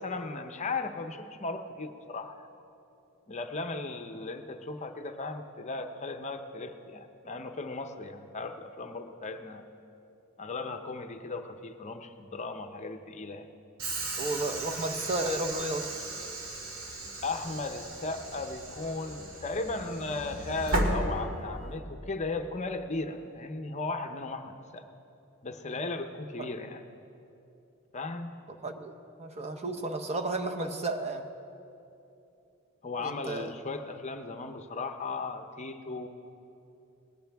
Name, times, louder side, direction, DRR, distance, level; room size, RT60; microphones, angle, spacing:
voice 1, 0.0-2.5 3.3-9.7 10.4-13.5 17.2-24.9 25.4-26.8 27.9-28.3 32.8-36.1, left 3 dB, 30° left, 7 dB, 0.7 m, -36 dB
Train / Sliding door, 13.8-21.8, right 1 dB, 70° right, 2.0 m, -35 dB
voice 2, 14.2-15.9 26.4-26.5 28.5-28.9 29.2-31.3 33.0-33.5, right 2 dB, 30° right, 7 dB, 0.7 m, -33 dB
19.5 x 18.0 x 3.5 m, 2.8 s
head